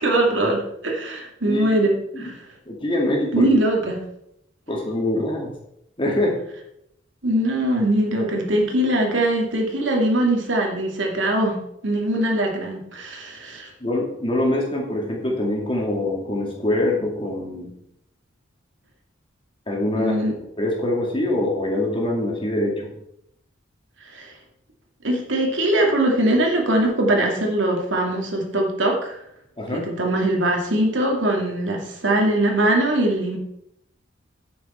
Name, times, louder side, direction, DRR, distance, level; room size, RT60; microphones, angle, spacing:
voice 1, 0.0-2.4 3.3-4.0 7.2-11.6 11.8-13.7 20.0-20.3 24.1-24.3 25.0-29.2 29.7-33.4, right 1 dB, 75° right, 1 dB, 2.4 m, -21 dB
voice 2, 2.7-3.5 4.7-5.5 6.0-6.4 13.8-17.7 19.7-20.1 20.6-22.9 29.6-29.9, left 1 dB, 25° left, -1 dB, 2.5 m, -24 dB
9.8 x 8.6 x 4.4 m, 0.76 s
head